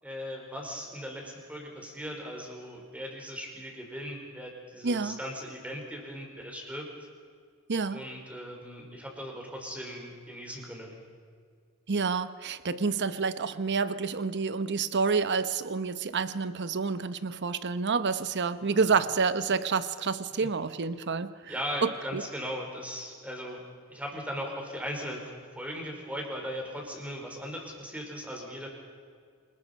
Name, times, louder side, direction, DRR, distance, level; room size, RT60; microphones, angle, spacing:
voice 1, 0.0-6.9 7.9-10.9 18.6-18.8 20.4-20.5 21.4-23.6 23.9-28.7, equal, 5° right, 1 dB, 4.7 m, -38 dB
voice 2, 4.8-5.2 7.7-8.0 11.9-21.3 21.8-22.2, right 5 dB, 55° right, 13 dB, 0.9 m, -28 dB
27.5 x 20.5 x 5.4 m, 2.1 s
head